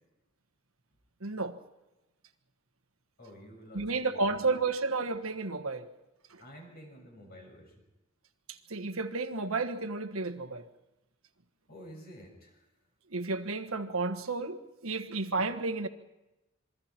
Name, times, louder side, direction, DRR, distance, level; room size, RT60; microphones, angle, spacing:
voice 1, 1.2-1.6 3.7-5.9 6.3-6.4 8.5-10.7 13.1-15.9, right 3 dB, 90° right, 8 dB, 1.5 m, -32 dB
voice 2, 3.2-4.3 6.4-7.7 11.7-12.6, equal, 50° left, 1 dB, 6.5 m, -50 dB
27.5 x 22.5 x 4.5 m, 0.97 s
head